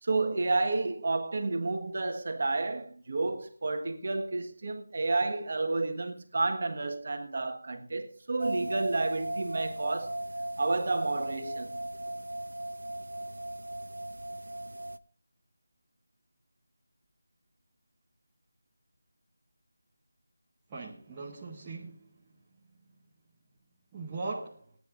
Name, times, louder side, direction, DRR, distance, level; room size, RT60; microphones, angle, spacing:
voice 1, 0.0-10.2 10.6-11.8, right 3 dB, 35° right, 1.5 m, -31 dB
sound 1, 8.4-15.0, right 1 dB, 75° right, 0.7 m, -37 dB
voice 2, 20.7-22.1 23.9-24.7, right 3 dB, 10° right, 0.9 m, -39 dB
29.0 x 9.8 x 2.6 m
figure-of-eight pair, 180°, 0 cm